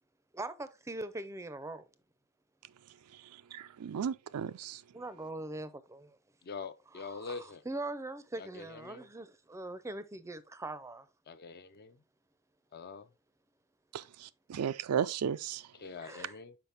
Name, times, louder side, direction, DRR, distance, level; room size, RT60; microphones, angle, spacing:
voice 1, 0.3-1.9 4.9-6.2 7.0-11.1 16.0-16.4, right 2 dB, 15° right, 0.5 m, -42 dB
voice 2, 3.1-4.8 13.9-15.7, right 8 dB, 80° right, 0.4 m, -35 dB
voice 3, 6.4-7.6 8.4-9.1 11.3-12.0 12.7-13.1 15.8-16.5, left 4 dB, 45° left, 0.5 m, -44 dB
5.7 x 4.8 x 3.4 m
head